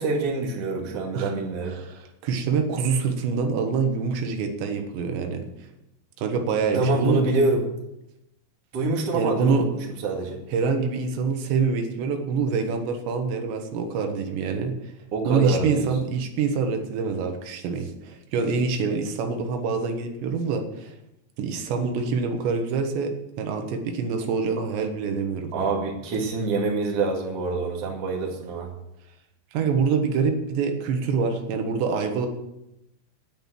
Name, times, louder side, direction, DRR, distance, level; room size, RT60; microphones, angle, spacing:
voice 1, 0.0-1.7 6.7-7.6 8.7-9.6 10.0-10.4 15.1-15.9 25.5-28.7, right 3 dB, 40° right, -1 dB, 2.7 m, -25 dB
voice 2, 1.6-5.5 6.2-7.2 9.1-9.7 10.5-14.9 15.3-21.0 21.4-23.1 23.4-25.5 29.5-32.3, right 5 dB, 85° right, 5 dB, 3.6 m, -25 dB
10.5 x 9.4 x 7.5 m, 0.87 s
omnidirectional pair, 4.9 m